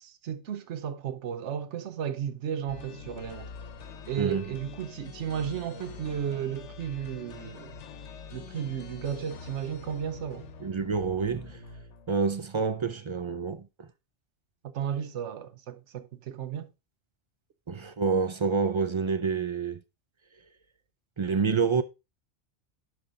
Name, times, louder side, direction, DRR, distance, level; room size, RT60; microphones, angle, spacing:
voice 1, 0.2-3.5 4.1-7.7 8.3-10.5 14.6-16.7, right 9 dB, 80° right, 1.1 m, -34 dB
sound 1, 2.7-12.5, left 5 dB, 85° left, 1.2 m, -45 dB
voice 2, 10.6-11.6 12.1-13.9 17.7-19.8 21.2-21.8, right 5 dB, 55° right, 0.3 m, -28 dB
11.5 x 4.8 x 3.7 m
omnidirectional pair, 1.2 m